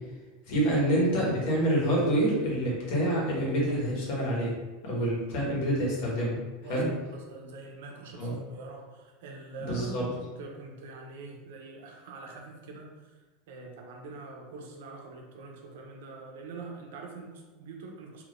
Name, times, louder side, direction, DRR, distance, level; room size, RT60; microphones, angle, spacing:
voice 1, 0.5-4.5 4.8-6.4 6.7-6.9 8.2-8.4 9.6-10.0, right 1 dB, 60° left, -4 dB, 1.3 m, -27 dB
voice 2, 6.6-18.2, right 3 dB, 80° right, 1 dB, 0.7 m, -44 dB
3.3 x 2.7 x 2.6 m, 1.2 s
supercardioid pair, 145°, 0 cm